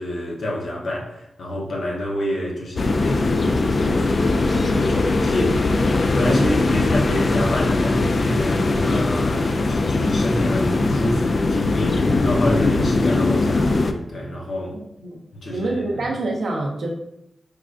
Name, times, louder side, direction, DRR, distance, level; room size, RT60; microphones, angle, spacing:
voice 1, 0.0-3.3 4.7-5.6 6.1-13.7 14.1-14.8 15.3-16.1, left 1 dB, 70° left, -2 dB, 0.8 m, -28 dB
sound 1, 2.8-13.9, left 3 dB, 55° left, 0.3 m, -20 dB
voice 2, 15.5-16.9, right 2 dB, 75° right, -1 dB, 0.7 m, -26 dB
4.6 x 2.4 x 2.4 m, 0.82 s
cardioid pair, 45°, 0 cm